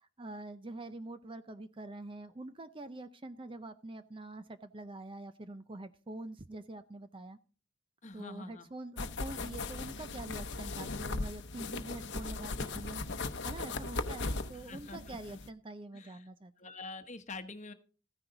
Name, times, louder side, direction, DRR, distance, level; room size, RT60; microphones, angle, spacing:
voice 1, 0.0-7.4 8.1-16.5, right 2 dB, 25° right, 11 dB, 0.5 m, -45 dB
voice 2, 8.0-8.7 14.5-15.4 15.9-16.3 16.6-17.7, left 3 dB, 35° left, 9 dB, 1.1 m, -46 dB
sound 1, 9.0-15.5, left 3 dB, 55° left, 0.9 m, -38 dB
14.5 x 9.9 x 3.9 m, 0.37 s
head